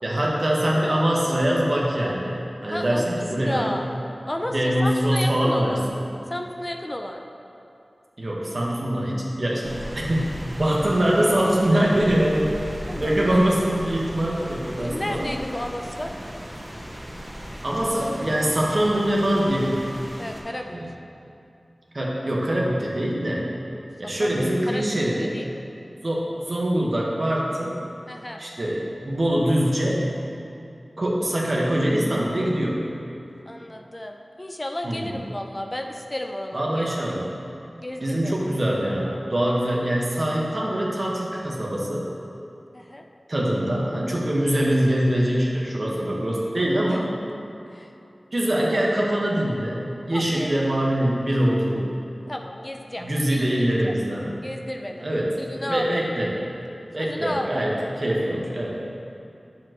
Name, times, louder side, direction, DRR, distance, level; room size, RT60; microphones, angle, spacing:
voice 1, 0.0-3.8 4.5-5.8 8.2-12.6 13.0-15.3 17.6-19.9 20.7-20.9 21.9-23.4 24.0-25.4 26.0-27.8 28.4-30.0 31.0-32.9 34.8-35.1 36.5-37.3 38.0-42.1 43.3-47.1 48.3-51.9 53.0-54.4 55.0-55.3 55.6-56.4 56.9-58.8, right 1 dB, 55° right, -3 dB, 1.4 m, -23 dB
voice 2, 2.7-3.1 3.4-3.9 4.3-4.5 4.8-5.9 6.3-7.2 12.9-13.4 14.3-14.4 14.8-16.1 20.2-20.8 23.7-23.9 24.2-24.9 25.2-25.6 28.1-28.4 33.5-37.2 37.8-38.4 42.7-43.0 47.7-47.9 50.1-50.5 52.3-53.9 54.4-55.1 55.4-55.9 57.0-57.5, left 1 dB, 25° left, 3 dB, 0.5 m, -33 dB
Rain, 9.6-20.4, equal, 30° right, 1.9 m, -37 dB
10.0 x 7.2 x 3.1 m, 2.7 s
wide cardioid pair, 60°, 0 cm